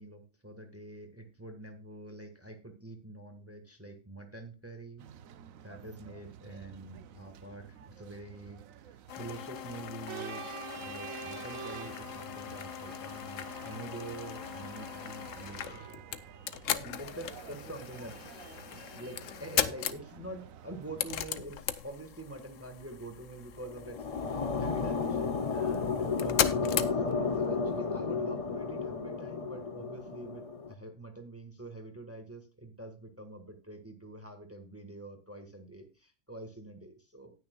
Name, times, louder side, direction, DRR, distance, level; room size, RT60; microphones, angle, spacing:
voice 1, 0.0-5.0 5.6-16.3 16.7-26.5 26.9-37.3, right 2 dB, 10° right, 6 dB, 1.4 m, -46 dB
sound 1, 5.0-21.2, right 10 dB, 85° right, 1.1 m, -49 dB
sound 2, 9.1-27.5, left 10 dB, 75° left, 1.1 m, -38 dB
sound 3, 23.6-30.7, left 5 dB, 35° left, 0.7 m, -32 dB
18.5 x 6.5 x 2.3 m, 0.33 s
omnidirectional pair, 1.4 m